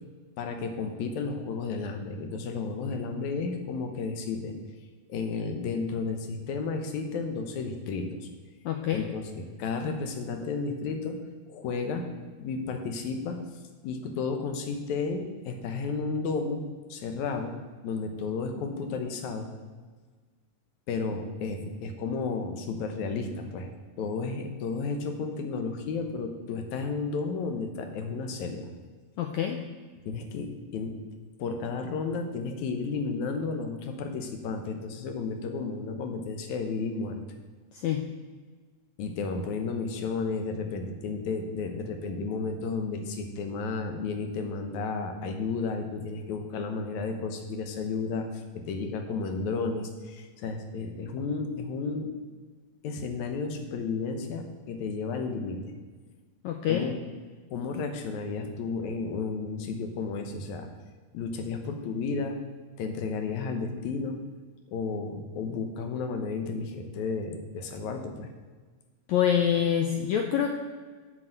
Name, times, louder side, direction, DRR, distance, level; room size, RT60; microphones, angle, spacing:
voice 1, 0.4-4.6 5.1-8.3 8.9-11.2 11.5-12.1 12.4-13.4 13.8-16.6 16.9-17.5 17.8-19.5 20.9-23.7 24.0-28.7 30.1-31.0 31.4-37.2 39.0-48.3 48.5-52.1 52.8-55.7 56.7-57.0 57.5-60.7 61.1-62.4 62.8-64.2 64.7-68.3, left 4 dB, 70° left, 5 dB, 2.3 m, -32 dB
voice 2, 8.6-9.1 29.2-29.6 37.7-38.1 56.4-56.9 69.1-70.6, left 9 dB, 85° left, 5 dB, 1.6 m, -26 dB
9.4 x 6.2 x 8.0 m, 1.4 s
omnidirectional pair, 3.9 m